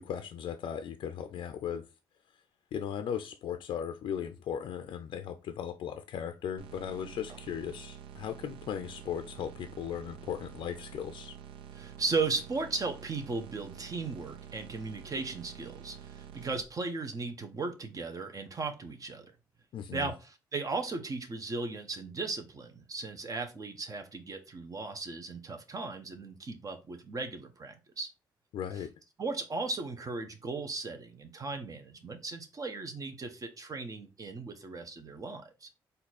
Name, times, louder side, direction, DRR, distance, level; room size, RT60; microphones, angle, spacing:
voice 1, 0.0-1.9 2.7-11.4 19.7-20.1 28.5-28.9, left 8 dB, 70° left, 0.5 m, -37 dB
sound 1, 6.6-16.6, right 9 dB, 80° right, 0.4 m, -48 dB
voice 2, 11.7-19.3 19.9-28.1 29.2-35.7, right 3 dB, 40° right, 1.1 m, -36 dB
4.2 x 2.7 x 4.1 m
supercardioid pair, 60°, 9 cm